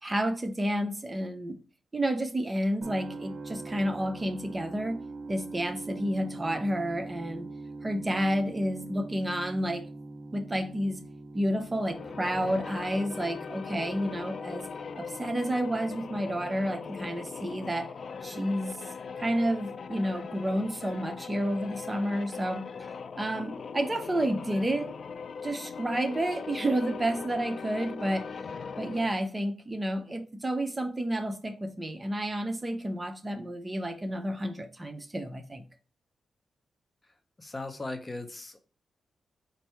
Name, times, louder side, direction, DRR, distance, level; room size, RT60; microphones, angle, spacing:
voice 1, 0.0-1.6 1.9-5.0 5.3-7.5 7.8-9.9 10.3-11.0 11.3-14.7 15.0-17.9 18.2-18.8 19.2-22.7 23.2-25.0 25.4-28.3 28.8-35.6, right 1 dB, 25° right, 0.6 m, -30 dB
sound 1, 2.8-18.7, right 3 dB, 70° right, 0.7 m, -44 dB
sound 2, 11.8-29.3, left 5 dB, 60° left, 0.4 m, -40 dB
voice 2, 37.4-38.7, left 2 dB, 25° left, 0.7 m, -38 dB
4.5 x 2.6 x 4.3 m
cardioid pair, 85°, 0 cm